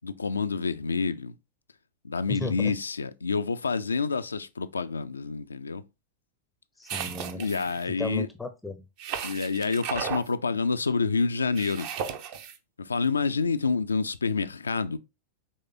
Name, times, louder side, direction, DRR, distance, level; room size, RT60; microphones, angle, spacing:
voice 1, 0.0-1.3 2.0-5.8 7.4-8.3 9.2-11.9 12.8-15.0, left 4 dB, 75° left, 0.3 m, -28 dB
voice 2, 2.3-2.7 6.8-7.4 7.8-8.9, left 2 dB, 5° left, 0.5 m, -35 dB
sound 1, 6.9-7.8 9.0-10.3 11.6-12.6, right 8 dB, 45° right, 0.6 m, -35 dB
5.5 x 3.1 x 2.7 m
figure-of-eight pair, 90°, 0 cm